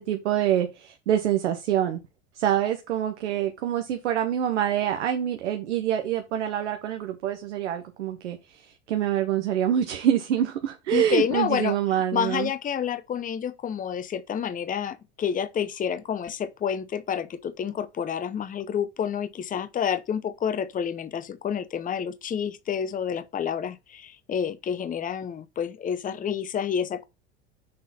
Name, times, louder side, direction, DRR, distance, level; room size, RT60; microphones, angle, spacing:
voice 1, 0.0-2.0 2.3-12.5, right 10 dB, 85° right, 0.9 m, -26 dB
voice 2, 10.9-11.8 12.1-27.0, left 8 dB, 25° left, 0.7 m, -29 dB
6.6 x 3.9 x 4.1 m
hypercardioid pair, 80°, 34 cm